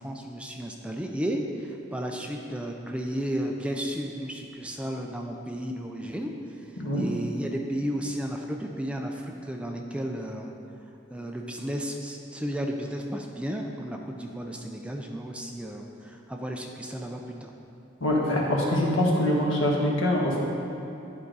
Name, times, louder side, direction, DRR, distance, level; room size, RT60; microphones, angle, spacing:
voice 1, 0.0-6.3 6.6-10.5 11.1-17.5, equal, 5° right, 2 dB, 0.4 m, -33 dB
voice 2, 18.0-20.4, left 1 dB, 90° left, -3 dB, 1.4 m, -24 dB
11.0 x 4.8 x 4.0 m, 2.8 s
head